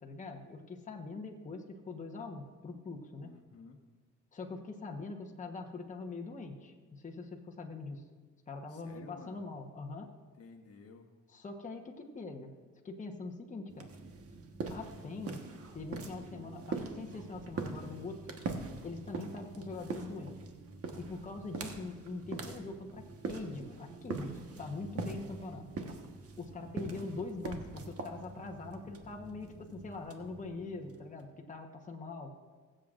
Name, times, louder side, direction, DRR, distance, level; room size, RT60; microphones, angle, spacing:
voice 1, 0.0-3.3 4.3-8.0 8.5-10.1 11.3-12.5 12.8-13.9 14.7-15.4 15.7-18.3 18.8-20.4 21.0-25.7 26.4-32.4, left 3 dB, 25° left, 2 dB, 1.1 m, -43 dB
voice 2, 3.2-3.8 8.7-9.5 10.4-11.1 16.3-16.6 26.8-27.1, left 5 dB, 50° left, 2 dB, 1.2 m, -53 dB
sound 1, 13.7-31.2, right 4 dB, 50° right, 1.3 m, -43 dB
22.0 x 7.7 x 2.5 m, 1.4 s
cardioid pair, 90°, 30 cm